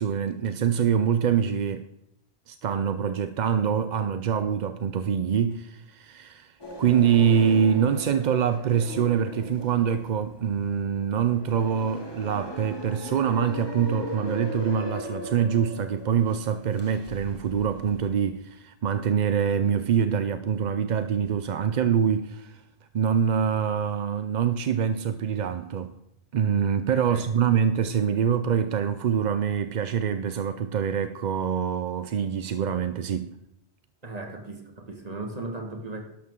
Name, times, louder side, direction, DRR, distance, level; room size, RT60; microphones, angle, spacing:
voice 1, 0.0-1.9 2.5-22.6 22.9-25.9 26.3-33.3, right 7 dB, 55° right, 0.6 m, -25 dB
sound 1, 6.6-18.2, left 1 dB, 20° left, 2.1 m, -38 dB
voice 2, 27.1-27.4 34.0-36.0, right 2 dB, 35° right, 1.8 m, -37 dB
12.0 x 12.0 x 3.7 m
omnidirectional pair, 1.1 m